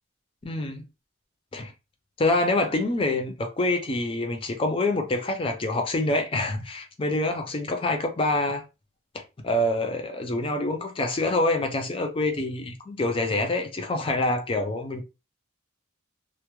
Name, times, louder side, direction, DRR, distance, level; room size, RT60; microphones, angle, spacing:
voice 1, 0.4-0.8 1.5-1.7 2.2-8.6 9.1-15.0, left 2 dB, 25° left, 0.5 m, -26 dB
2.2 x 2.1 x 3.0 m
head